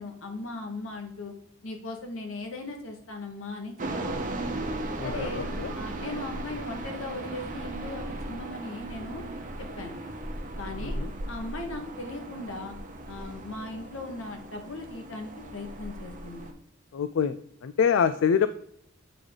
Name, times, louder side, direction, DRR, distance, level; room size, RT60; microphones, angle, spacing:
voice 1, 0.0-1.3 1.6-4.2 5.0-5.5 5.8-9.2 9.6-10.0 10.6-11.0 11.3-12.7 13.1-16.5, left 2 dB, 85° left, 3 dB, 1.5 m, -38 dB
sound 1, 3.8-16.5, right 1 dB, 40° right, 1.0 m, -37 dB
voice 2, 5.0-5.7 11.0-11.1 16.9-17.4 17.6-18.5, left 7 dB, 70° left, 12 dB, 0.4 m, -25 dB
7.8 x 5.0 x 3.7 m, 0.70 s
head